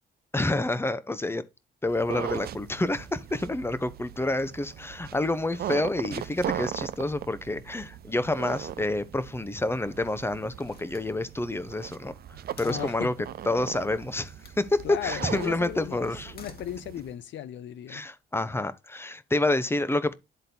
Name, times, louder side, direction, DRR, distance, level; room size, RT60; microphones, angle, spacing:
voice 1, 0.3-1.5 1.8-12.1 12.6-13.1 13.5-16.3 17.9-20.1, left 2 dB, 10° left, 0.7 m, -28 dB
sound 1, 1.9-17.1, right 11 dB, 50° right, 0.4 m, -39 dB
Slam, 9.9-10.2 10.7-13.2 14.2-14.6 16.1-17.3, left 5 dB, 50° left, 1.5 m, -52 dB
voice 2, 12.6-13.1 14.8-18.0, left 11 dB, 70° left, 0.7 m, -36 dB
11.0 x 3.8 x 2.7 m
cardioid pair, 90°, 20 cm